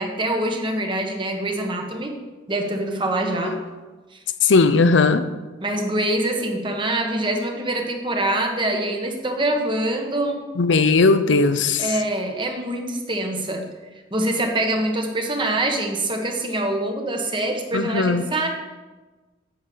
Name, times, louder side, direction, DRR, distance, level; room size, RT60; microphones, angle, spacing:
voice 1, 0.0-2.2 2.5-3.6 4.1-4.2 5.6-10.4 11.8-13.7 14.1-18.5, right 1 dB, 25° right, 3 dB, 1.3 m, -24 dB
voice 2, 4.4-5.3 10.6-12.0 17.7-18.2, left 4 dB, 85° left, 10 dB, 0.6 m, -18 dB
8.8 x 5.8 x 7.3 m, 1.3 s
head